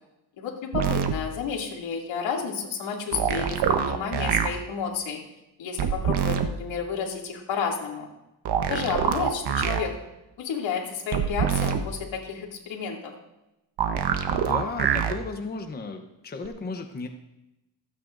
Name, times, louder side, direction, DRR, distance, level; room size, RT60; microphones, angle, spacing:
voice 1, 0.4-5.2 5.6-8.1 8.7-9.9 10.4-13.1, left 6 dB, 80° left, -1 dB, 2.6 m, -31 dB
sound 1, 0.7-1.1 3.1-4.5 5.8-6.5 8.5-9.8 11.1-11.8 13.8-15.1 16.5-16.6, right 8 dB, 60° right, 1.0 m, -25 dB
voice 2, 14.3-17.1, left 3 dB, 20° left, 5 dB, 0.8 m, -34 dB
26.0 x 9.0 x 2.6 m, 0.95 s
cardioid pair, 150°, 45 cm